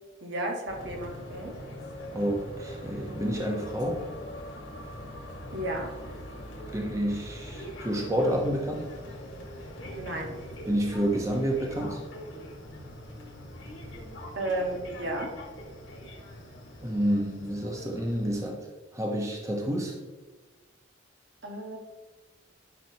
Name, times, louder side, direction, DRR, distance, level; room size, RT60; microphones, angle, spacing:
voice 1, 0.2-1.6 5.5-5.9 10.0-10.4 14.3-15.3 21.4-21.8, right 1 dB, 55° right, 1 dB, 1.5 m, -33 dB
sound 1, 0.7-18.4, equal, 70° left, 2.0 m, -42 dB
voice 2, 2.1-4.0 6.7-8.9 10.7-12.0 16.8-18.7 18.9-19.9, equal, 15° right, 0 dB, 1.0 m, -29 dB
11.0 x 5.9 x 2.9 m, 1.2 s
head